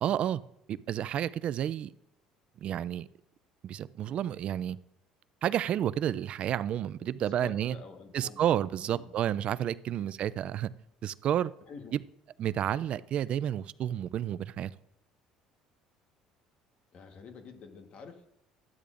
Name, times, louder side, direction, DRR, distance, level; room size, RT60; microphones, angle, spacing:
voice 1, 0.0-0.4 0.7-1.9 2.6-3.1 3.6-4.8 5.4-7.8 8.1-10.7 11.0-11.5 11.9-12.0 12.4-14.7, right 10 dB, 50° right, 17 dB, 0.3 m, -30 dB
voice 2, 7.0-8.5 8.8-9.1 9.9-10.1 11.6-12.0 16.9-18.3, left 4 dB, 50° left, 6 dB, 1.3 m, -48 dB
12.0 x 8.3 x 2.5 m, 0.80 s
supercardioid pair, 100°, 2 cm